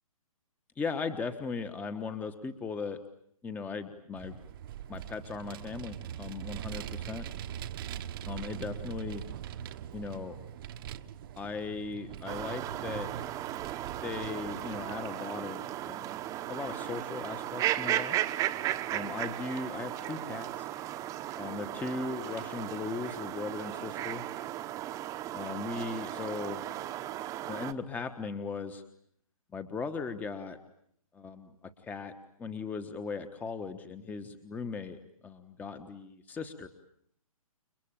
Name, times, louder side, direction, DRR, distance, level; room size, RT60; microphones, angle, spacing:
voice 1, 0.8-3.0 3.4-4.4 4.9-7.3 8.2-9.2 9.9-10.4 11.4-13.1 14.0-16.2 16.5-18.2 18.9-20.7 21.3-24.2 25.3-26.6 27.5-28.8 29.5-30.6 31.1-31.5 31.8-32.1 32.4-36.7, left 4 dB, 10° left, 9 dB, 1.3 m, -38 dB
Vehicle, 4.2-15.1, right 10 dB, 40° right, 1.2 m, -42 dB
sound 1, 12.3-27.7, right 13 dB, 15° right, 1.1 m, -36 dB
30.0 x 22.0 x 8.9 m, 0.69 s
hypercardioid pair, 145°, 19 cm